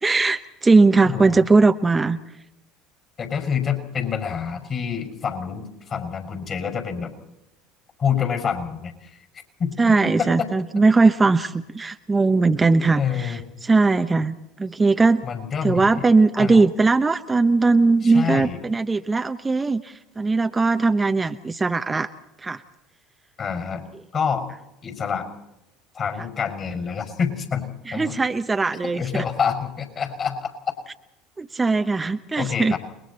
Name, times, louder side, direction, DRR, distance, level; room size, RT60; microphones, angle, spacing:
voice 1, 0.0-2.2 9.8-15.2 15.6-22.1 22.4-22.6 27.9-29.2 31.4-32.7, right 3 dB, 20° right, 8 dB, 0.9 m, -19 dB
voice 2, 1.0-1.4 3.2-7.1 8.0-8.9 9.6-10.5 13.0-13.4 15.2-16.0 16.4-16.7 18.0-18.6 23.4-23.8 24.1-24.4 24.8-25.3 25.9-27.7 27.9-28.2 29.0-30.5 32.4-32.8, left 7 dB, 40° left, 6 dB, 5.9 m, -27 dB
29.5 x 22.0 x 4.3 m, 0.90 s
hypercardioid pair, 70°, 0 cm